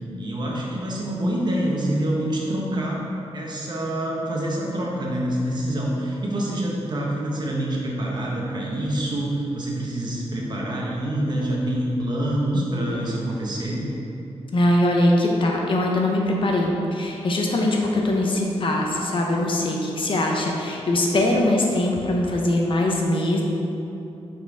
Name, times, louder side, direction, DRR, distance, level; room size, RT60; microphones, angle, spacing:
voice 1, 0.2-3.0 3.3-13.9, right 1 dB, 40° right, -3 dB, 1.2 m, -26 dB
voice 2, 14.5-23.4, left 1 dB, 50° left, 0 dB, 0.8 m, -22 dB
5.8 x 4.3 x 4.8 m, 2.9 s
wide cardioid pair, 120°, 11 cm